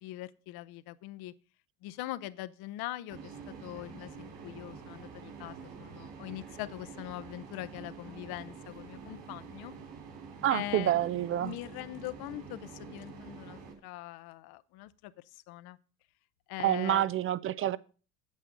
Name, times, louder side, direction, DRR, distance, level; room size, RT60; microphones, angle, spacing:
voice 1, 0.0-1.3 1.8-3.2 3.5-9.7 10.5-11.0 11.4-15.8 16.5-17.0, left 16 dB, 50° left, 0.8 m, -42 dB
sound 1, 3.1-13.7, right 5 dB, 55° right, 3.6 m, -47 dB
voice 2, 10.4-11.5 16.6-17.8, right 12 dB, 30° right, 0.4 m, -28 dB
8.5 x 8.0 x 5.0 m
hypercardioid pair, 80°, 48 cm